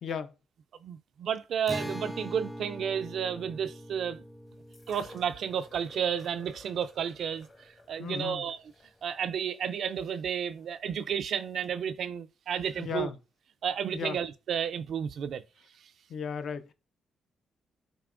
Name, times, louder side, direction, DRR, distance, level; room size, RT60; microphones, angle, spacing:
voice 1, 0.0-0.3 8.0-8.4 12.8-13.2 13.9-14.2 16.1-16.7, left 7 dB, 65° left, 0.6 m, -35 dB
voice 2, 0.8-4.2 4.9-8.6 9.0-13.1 13.6-15.4, right 8 dB, 70° right, 0.4 m, -32 dB
Acoustic guitar, 1.7-7.1, equal, ahead, 0.3 m, -43 dB
sound 1, 4.7-10.8 11.6-11.7, left 2 dB, 35° left, 1.0 m, -55 dB
6.8 x 2.9 x 2.5 m
cardioid pair, 95°, 0 cm